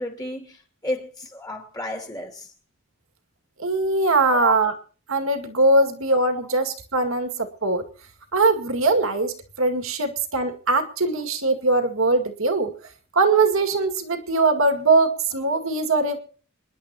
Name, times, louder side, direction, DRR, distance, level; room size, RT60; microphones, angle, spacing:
voice 1, 0.0-2.5 4.3-4.5 5.8-5.9 6.4-6.5, left 1 dB, 20° left, 2.7 m, -32 dB
voice 2, 3.6-4.7 5.1-7.8 8.3-12.7 13.1-16.2, right 3 dB, 75° right, 2.2 m, -21 dB
27.0 x 11.0 x 3.0 m
head